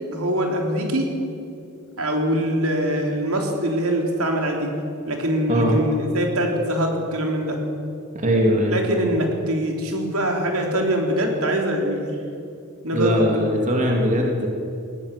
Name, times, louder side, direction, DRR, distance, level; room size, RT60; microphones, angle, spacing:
voice 1, 0.1-1.1 2.0-4.7 5.1-7.6 8.7-12.2 12.8-13.2, right 1 dB, 75° right, 1 dB, 3.8 m, -23 dB
voice 2, 8.1-8.7 12.9-14.5, equal, 35° right, 0 dB, 2.9 m, -20 dB
20.0 x 18.0 x 8.4 m, 2.6 s
head